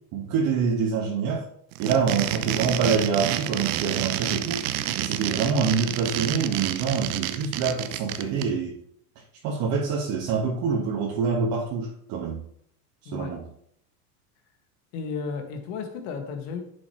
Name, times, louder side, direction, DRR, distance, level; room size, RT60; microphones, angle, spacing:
voice 1, 0.1-1.4 1.8-4.7 5.0-8.8 9.4-12.4 13.0-13.4, right 5 dB, 45° right, -2 dB, 1.7 m, -26 dB
sound 1, 1.7-8.4, right 13 dB, 65° right, 0.9 m, -29 dB
voice 2, 13.1-13.4 14.9-16.6, left 5 dB, 60° left, 5 dB, 2.0 m, -33 dB
11.5 x 6.9 x 3.2 m, 0.69 s
supercardioid pair, 110°, 46 cm